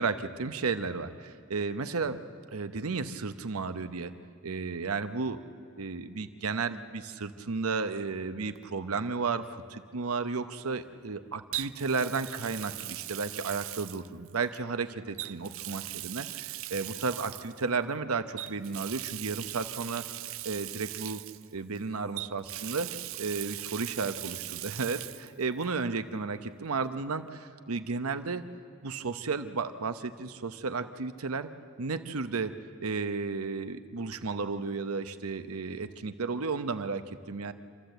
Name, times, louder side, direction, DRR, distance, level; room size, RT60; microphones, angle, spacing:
voice 1, 0.0-2.2 2.5-4.1 4.4-5.4 5.8-20.0 20.4-21.2 21.5-22.9 23.2-28.4 28.8-31.5 31.8-32.5 32.8-37.5, right 4 dB, 85° right, 10 dB, 0.9 m, -33 dB
Water tap faucet, 8.6-8.8 11.5-14.6 15.1-17.6 18.4-21.8 22.2-25.3 25.6-25.7 27.3-27.4, right 16 dB, 65° right, 0.4 m, -40 dB
27.0 x 13.5 x 7.9 m, 2.3 s
head